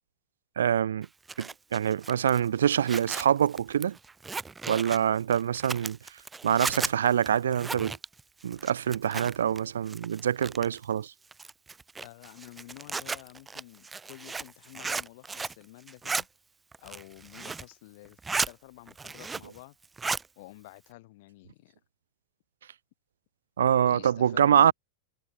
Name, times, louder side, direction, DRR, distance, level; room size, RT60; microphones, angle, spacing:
voice 1, 0.6-1.1 1.4-4.0 4.7-6.0 6.4-8.0 8.4-11.1 23.6-24.7, right 9 dB, 65° right, 1.5 m, -25 dB
Zipper (clothing), 1.0-9.6 9.9-10.8 11.3-15.6 15.9-16.2 16.7-17.7 18.0-18.5 18.9-19.6 19.8-20.3, right 4 dB, 10° right, 2.2 m, -35 dB
voice 2, 12.0-16.3 16.8-18.2 18.4-19.8 20.4-21.8 23.9-24.7, left 20 dB, 50° left, 7.1 m, -49 dB
figure-of-eight pair, 90°, 0 cm